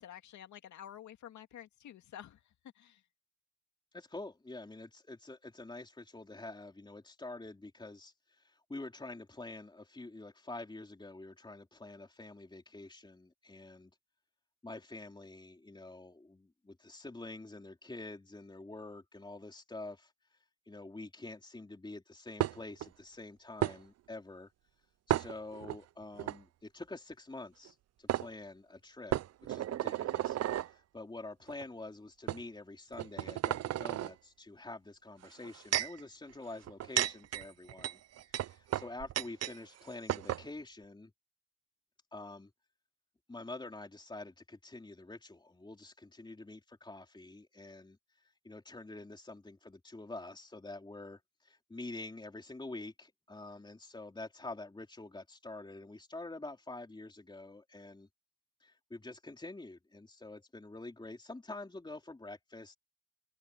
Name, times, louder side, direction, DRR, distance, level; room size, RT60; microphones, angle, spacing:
voice 1, 0.0-2.4 2.7-3.0, left 11 dB, 70° left, 2.4 m, -50 dB
voice 2, 3.9-13.9 14.6-20.4 20.7-24.5 25.1-29.2 29.5-38.0 38.3-41.1 42.1-42.5 43.3-58.1 58.6-62.7, left 2 dB, 15° left, 3.6 m, -47 dB
sound 1, 22.4-22.9 23.6-23.8 25.1-25.8 26.2-26.4 27.7-27.8 28.1-28.3 29.1-30.7 31.5-31.6 32.3-32.4 32.9-34.1 35.2-36.0 36.6-39.6 39.8-39.9 40.1-40.4, right 12 dB, 55° right, 0.6 m, -33 dB
open air
cardioid pair, 90°, 30 cm